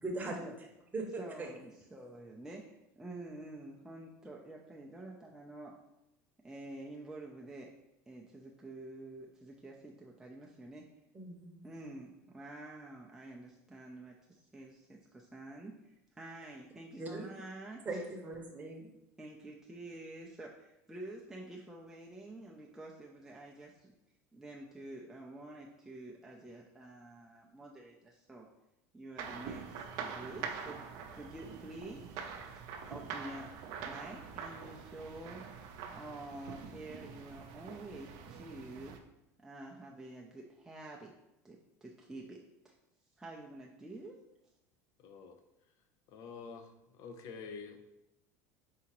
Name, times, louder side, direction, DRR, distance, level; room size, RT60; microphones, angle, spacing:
voice 1, 0.0-0.4 0.9-1.1 1.4-1.5 11.1-11.6 17.0-17.3 17.8-18.9, right 2 dB, 20° right, 0 dB, 0.9 m, -39 dB
voice 2, 1.2-5.8 6.4-7.7 8.1-10.9 11.3-17.8 19.2-23.9 24.3-28.5 28.9-30.8 31.1-32.6 32.9-33.5 33.9-35.4 35.9-39.0 39.4-41.1 41.4-42.7 43.2-44.2, right 2 dB, 5° right, -3 dB, 0.5 m, -48 dB
sound 1, 29.2-39.0, right 6 dB, 65° right, 0.5 m, -45 dB
voice 3, 45.0-45.4 46.1-46.7 46.9-47.8, left 5 dB, 55° left, 6 dB, 0.6 m, -47 dB
4.8 x 2.7 x 3.0 m, 0.89 s
supercardioid pair, 110°, 8 cm